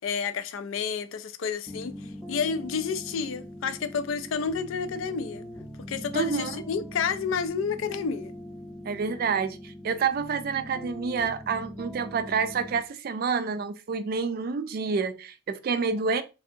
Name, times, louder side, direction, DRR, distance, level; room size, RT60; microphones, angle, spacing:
voice 1, 0.0-5.4 5.9-8.3, left 6 dB, 75° left, 0.4 m, -30 dB
sound 1, 1.7-12.8, equal, 15° left, 0.5 m, -42 dB
voice 2, 6.1-6.5 8.8-16.2, right 5 dB, 45° right, 0.3 m, -28 dB
3.3 x 2.7 x 2.6 m
head